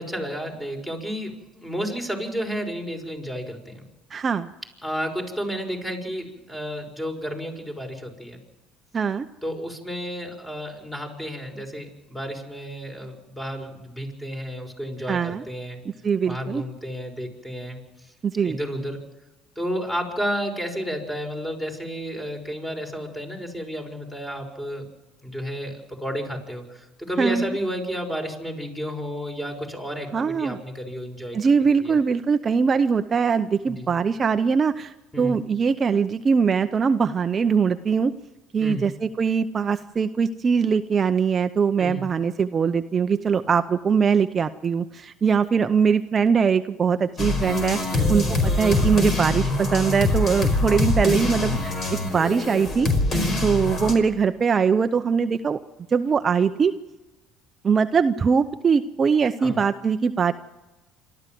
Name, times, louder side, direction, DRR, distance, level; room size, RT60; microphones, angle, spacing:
voice 1, 0.0-3.9 4.8-8.4 9.4-15.8 16.2-17.8 18.4-19.0 19.6-24.8 25.2-31.4 31.8-31.9 33.7-33.9 35.1-35.4 38.6-38.9 41.8-42.1 47.9-48.2 53.1-53.4 59.4-59.6, equal, 10° left, 3 dB, 5.8 m, -31 dB
voice 2, 4.1-4.5 8.9-9.3 15.1-15.4 16.0-16.6 18.2-18.6 27.2-27.5 30.1-30.6 31.3-38.1 38.5-48.2 48.6-52.9 53.4-55.6 55.9-56.7 57.6-60.3, right 6 dB, 35° right, 9 dB, 0.7 m, -22 dB
sound 1, 47.2-53.9, left 2 dB, 45° left, 5.1 m, -24 dB
27.0 x 13.0 x 7.7 m, 1.1 s
supercardioid pair, 80°, 0 cm